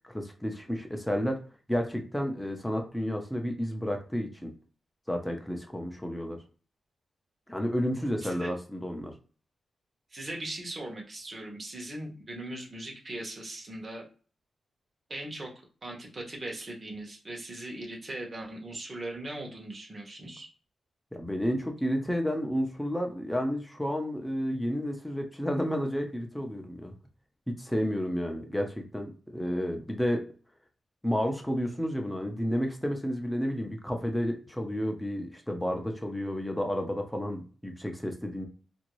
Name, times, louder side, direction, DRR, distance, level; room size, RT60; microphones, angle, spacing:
voice 1, 0.1-1.4 1.7-4.5 5.1-6.4 7.5-9.1 21.1-26.9 27.5-30.2 31.0-38.5, equal, 5° left, 3 dB, 0.7 m, -31 dB
voice 2, 8.2-8.5 10.1-14.0 15.1-15.5 15.8-20.5, right 1 dB, 35° right, -1 dB, 1.1 m, -39 dB
2.8 x 2.6 x 3.0 m, 0.38 s
cardioid pair, 100°, 0 cm